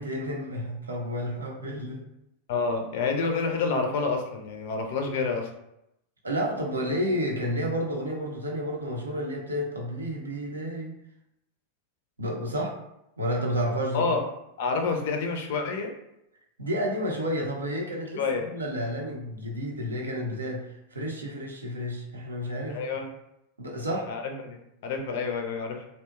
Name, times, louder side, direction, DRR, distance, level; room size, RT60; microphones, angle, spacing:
voice 1, 0.0-2.0 6.2-11.0 12.2-12.7 13.2-14.1 16.6-23.1 23.6-24.1, equal, 75° right, -1 dB, 0.5 m, -31 dB
voice 2, 2.5-5.5 13.9-14.2 14.6-15.9 18.2-18.5 22.7-23.1 24.1-25.9, left 4 dB, 50° left, 3 dB, 0.4 m, -28 dB
2.6 x 2.1 x 2.3 m, 0.84 s
figure-of-eight pair, 90°, 0 cm